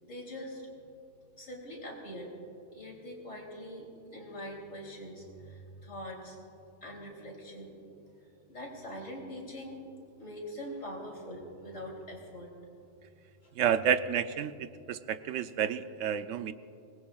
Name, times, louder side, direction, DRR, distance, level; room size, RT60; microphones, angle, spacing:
voice 1, 0.0-0.7 1.4-2.3 2.7-3.9 4.1-6.4 6.8-7.8 8.5-9.8 10.2-12.5 13.4-13.5, equal, 85° left, -2 dB, 3.6 m, -43 dB
voice 2, 13.6-16.5, right 8 dB, 80° right, 12 dB, 0.9 m, -30 dB
25.0 x 19.5 x 2.4 m, 2.7 s
omnidirectional pair, 1.3 m